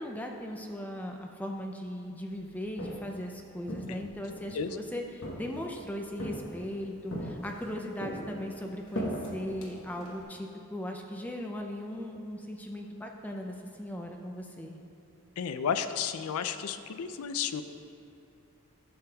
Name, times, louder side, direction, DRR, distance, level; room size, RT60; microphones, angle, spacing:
voice 1, 0.0-14.8, equal, 5° left, 2 dB, 0.4 m, -38 dB
Walk footsteps, 2.5-3.2 3.6-4.7 5.2-5.8 6.2-6.7 7.1-7.7 8.0-10.2, equal, 60° left, 1.2 m, -38 dB
voice 2, 15.4-17.6, left 7 dB, 80° left, 10 dB, 0.4 m, -32 dB
11.0 x 6.8 x 2.3 m, 2.8 s
head